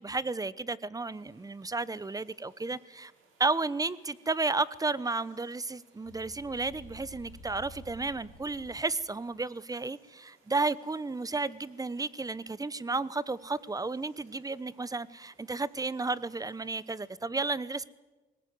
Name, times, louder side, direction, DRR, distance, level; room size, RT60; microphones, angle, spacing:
voice 1, 0.0-3.1 3.4-17.8, right 3 dB, 20° right, 19 dB, 0.9 m, -33 dB
sound 1, 1.1-17.1, right 4 dB, 85° right, 5.7 m, -67 dB
sound 2, 6.0-9.0, equal, 65° left, 3.3 m, -51 dB
20.5 x 18.0 x 9.6 m, 1.2 s
cardioid pair, 90°, 20 cm